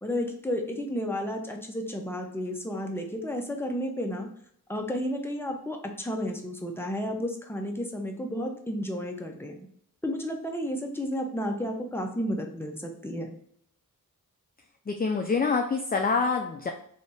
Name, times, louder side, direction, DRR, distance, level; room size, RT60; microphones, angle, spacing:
voice 1, 0.0-4.3 4.7-9.7 10.0-13.3, equal, 5° left, 2 dB, 0.7 m, -32 dB
voice 2, 14.9-16.7, left 4 dB, 25° left, 4 dB, 0.4 m, -26 dB
3.3 x 2.7 x 4.1 m, 0.66 s
wide cardioid pair, 70°, 36 cm